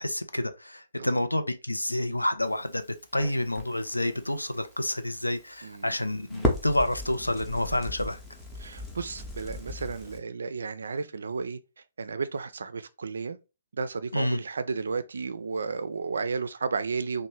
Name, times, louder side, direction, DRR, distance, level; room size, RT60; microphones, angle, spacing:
voice 1, 0.0-2.9 3.1-8.2 14.1-14.4, left 1 dB, 85° left, 0.4 m, -29 dB
Crackle, 2.4-10.2, left 1 dB, 5° left, 0.6 m, -37 dB
voice 2, 5.6-5.9 8.6-11.6 12.0-13.4 13.7-17.3, right 4 dB, 65° right, 0.3 m, -33 dB
2.9 x 2.1 x 3.0 m
figure-of-eight pair, 130°, 0 cm